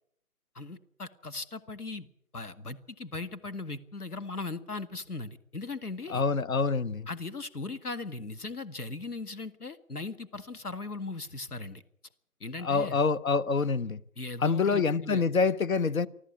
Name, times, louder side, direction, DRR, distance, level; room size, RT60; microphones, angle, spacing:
voice 1, 0.6-2.1 2.3-6.2 7.1-11.8 12.4-13.0 14.2-15.2, left 3 dB, 90° left, 1.9 m, -38 dB
voice 2, 6.1-7.1 12.6-14.0 14.4-16.1, left 4 dB, 65° left, 1.2 m, -26 dB
25.5 x 14.0 x 8.7 m
figure-of-eight pair, 155°, 44 cm